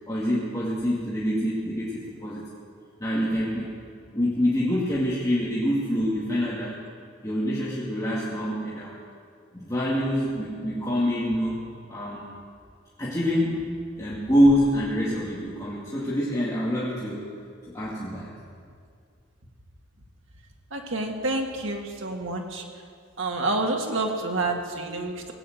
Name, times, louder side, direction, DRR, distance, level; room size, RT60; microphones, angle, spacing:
voice 1, 0.1-2.5 3.0-3.7 4.1-6.8 7.2-9.0 9.5-11.6 11.9-12.4 13.0-13.6 14.0-17.3 17.7-18.3, equal, 20° left, -8 dB, 2.2 m, -25 dB
voice 2, 20.7-22.6 23.2-25.3, right 2 dB, 85° right, 2 dB, 1.9 m, -28 dB
19.0 x 9.1 x 7.9 m, 2.2 s
head